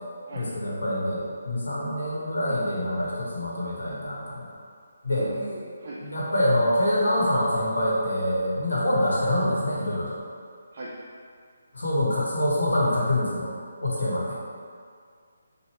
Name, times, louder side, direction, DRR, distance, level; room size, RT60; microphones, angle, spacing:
voice 1, 0.3-4.5 5.0-5.3 6.0-10.2 11.7-13.5 13.8-14.4, left 1 dB, 85° left, -6 dB, 1.2 m, -25 dB
voice 2, 5.1-6.0 10.7-10.9, right 2 dB, 45° right, -6 dB, 0.5 m, -38 dB
4.3 x 2.6 x 3.2 m, 2.1 s
figure-of-eight pair, 155°, 0 cm